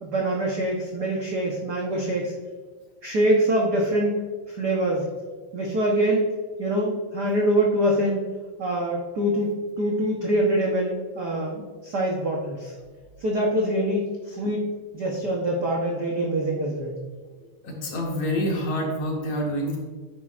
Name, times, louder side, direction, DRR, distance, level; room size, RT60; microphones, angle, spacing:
voice 1, 0.0-2.3 3.0-5.1 5.5-6.3 6.6-8.2 8.6-12.7 13.2-16.9, right 1 dB, 70° right, -1 dB, 0.9 m, -24 dB
voice 2, 17.4-19.8, equal, 60° left, -1 dB, 2.7 m, -27 dB
10.5 x 9.5 x 2.5 m, 1.5 s
omnidirectional pair, 3.4 m